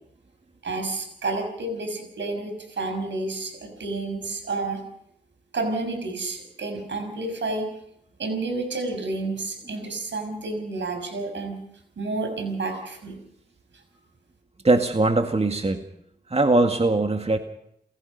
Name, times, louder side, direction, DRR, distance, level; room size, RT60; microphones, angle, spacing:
voice 1, 0.6-4.8 5.5-7.7 8.2-11.6 12.0-13.1, right 3 dB, 85° right, 5 dB, 6.1 m, -30 dB
voice 2, 14.6-15.8 16.3-17.4, right 2 dB, 35° right, 5 dB, 2.0 m, -21 dB
29.0 x 16.0 x 5.5 m, 0.72 s
cardioid pair, 45°, 19 cm